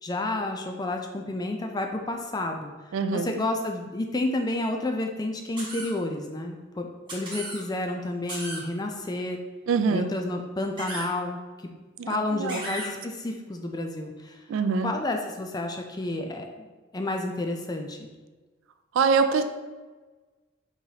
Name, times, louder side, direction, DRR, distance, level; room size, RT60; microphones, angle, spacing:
voice 1, 0.0-2.7 3.1-9.4 9.9-11.4 12.1-14.4 14.8-18.1, left 2 dB, 20° left, 3 dB, 0.3 m, -30 dB
voice 2, 2.9-3.3 9.7-10.1 12.0-12.1 12.4-12.6 14.5-14.9 19.0-19.4, right 5 dB, 75° right, 9 dB, 0.3 m, -23 dB
sound 1, 5.6-5.9 7.1-7.6 8.3-8.6 10.8-11.1 12.5-12.9, right 1 dB, 25° right, 1.2 m, -35 dB
5.4 x 3.0 x 2.8 m, 1.3 s
head